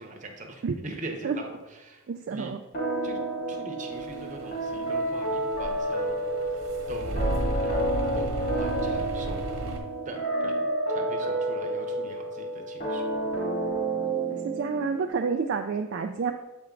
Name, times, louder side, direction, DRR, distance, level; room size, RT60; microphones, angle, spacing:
voice 1, 0.0-1.6 1.8-2.0 2.3-2.5 3.0-3.2 3.5-6.2 6.5-7.9 8.1-9.5 10.0-13.1, right 2 dB, 35° right, 3 dB, 0.9 m, -42 dB
voice 2, 2.1-2.6 14.3-16.3, right 5 dB, 50° right, 5 dB, 0.3 m, -29 dB
sound 1, 2.7-15.1, right 1 dB, 45° left, 2.2 m, -30 dB
sound 2, 3.9-9.8, right 1 dB, 70° right, 1.3 m, -35 dB
7.6 x 4.4 x 3.8 m, 1.1 s
head